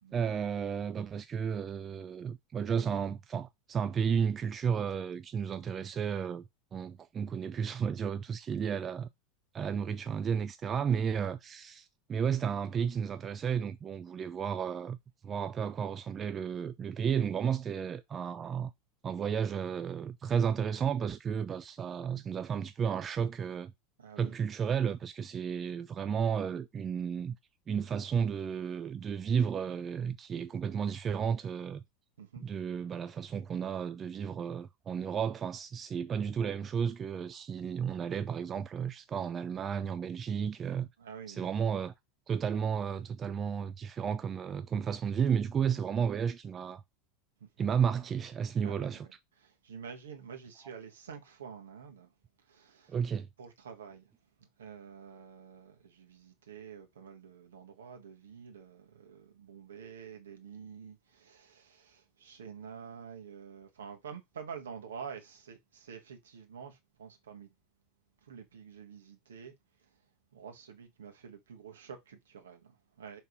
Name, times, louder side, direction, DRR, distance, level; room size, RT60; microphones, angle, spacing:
voice 1, 0.1-6.4 6.7-9.1 9.5-15.0 15.2-18.7 19.0-23.7 24.2-27.4 27.7-31.8 32.4-40.9 41.3-41.9 42.3-46.8 47.6-49.1 52.9-53.3, right 7 dB, 25° right, 0.4 m, -33 dB
voice 2, 24.0-24.4 32.2-32.4 41.0-41.5 47.4-47.5 48.6-52.1 52.4-53.0 53.4-54.1 54.4-67.5 68.2-70.0 70.3-73.2, right 7 dB, 70° right, 1.6 m, -48 dB
5.4 x 3.5 x 5.0 m
figure-of-eight pair, 80°, 0 cm